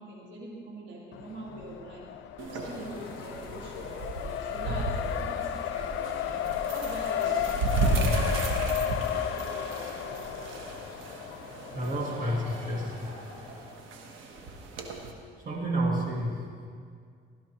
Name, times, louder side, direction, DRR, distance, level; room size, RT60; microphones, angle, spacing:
voice 1, 0.0-2.1 2.4-3.9 4.2-6.4 6.7-7.5, right 2 dB, 70° right, -3 dB, 2.2 m, -43 dB
Race car auto racing, 1.1-13.7, left 10 dB, 80° left, 0.4 m, -34 dB
sound 1, 2.4-15.1, right 2 dB, 90° right, 1.3 m, -34 dB
voice 2, 11.7-13.2 13.5-13.6 15.4-16.6, right 1 dB, 45° right, -2 dB, 2.3 m, -30 dB
16.0 x 12.5 x 3.1 m, 2.1 s
cardioid pair, 90°, 20 cm